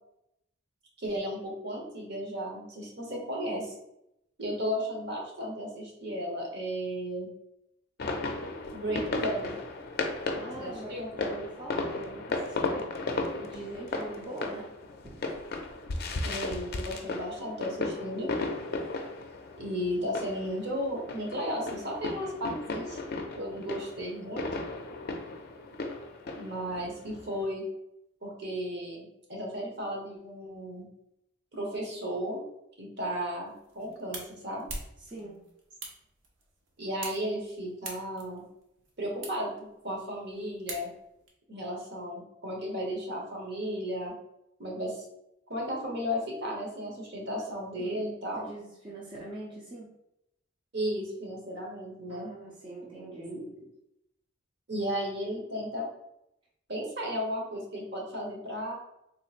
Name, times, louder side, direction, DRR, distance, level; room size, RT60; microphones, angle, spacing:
voice 1, 1.0-3.7 4.4-7.3 8.7-9.5 10.6-11.1 16.2-18.3 19.6-23.0 23.4-24.5 26.3-27.6 28.2-30.8 31.5-32.4 32.8-34.7 36.8-38.4 39.0-39.5 39.8-40.9 41.5-44.1 44.6-45.0 45.5-48.5 50.7-52.3 53.2-53.4 54.7-55.9 56.7-58.7, equal, 60° right, -2 dB, 1.1 m, -34 dB
sound 1, 8.0-27.5, left 3 dB, 55° left, 0.4 m, -35 dB
voice 2, 10.4-13.0 13.4-14.7 15.2-15.4 33.8-33.9 35.0-35.5 47.8-48.0 48.3-49.9 52.1-53.3, right 2 dB, 25° right, -6 dB, 0.6 m, -43 dB
sound 2, 33.5-41.3, right 3 dB, 90° right, 0.8 m, -46 dB
3.7 x 2.9 x 2.4 m, 0.81 s
head